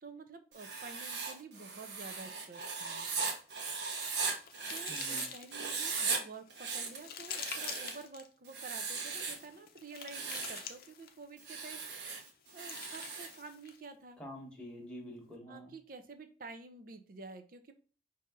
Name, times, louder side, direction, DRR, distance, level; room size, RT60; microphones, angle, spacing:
voice 1, 0.0-3.3 4.7-11.8 12.2-12.3 12.5-14.2 15.5-17.7, right 4 dB, 50° right, 8 dB, 0.6 m, -50 dB
Writing, 0.5-5.3 5.5-6.2 6.5-8.0 8.5-9.5 10.0-10.7 11.4-13.4, right 4 dB, 75° right, 1.0 m, -38 dB
sound 1, 3.5-5.8 6.3-8.3 9.1-11.3 12.3-13.8, left 7 dB, 55° left, 0.6 m, -47 dB
voice 2, 4.9-5.3 14.2-15.7, equal, 5° left, -1 dB, 1.1 m, -47 dB
5.1 x 2.8 x 3.6 m, 0.39 s
head